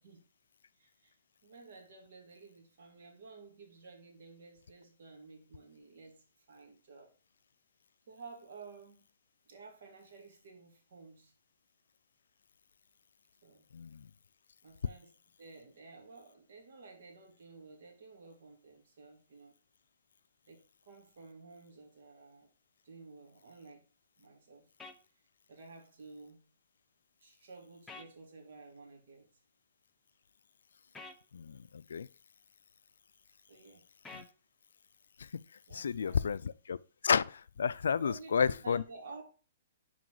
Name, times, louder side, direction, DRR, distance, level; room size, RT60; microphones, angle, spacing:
voice 1, 0.8-1.1 1.4-7.1 8.1-9.1 9.5-11.3 13.4-13.6 14.6-15.1 15.4-19.5 20.4-22.5 22.8-23.8 24.2-24.7 25.5-26.4 27.2-29.3 33.5-33.8 35.7-36.3 38.0-39.2, right 4 dB, 60° right, 2.6 m, -53 dB
voice 2, 13.7-14.1 31.3-32.1 34.1-34.2 35.2-35.4 35.7-36.8 37.0-38.8, left 6 dB, 85° left, 0.4 m, -31 dB
sound 1, 24.8-25.0 27.9-28.1 30.9-31.2 34.0-34.3, left 3 dB, 5° left, 0.6 m, -48 dB
6.1 x 4.7 x 4.8 m
hypercardioid pair, 160°, 0 cm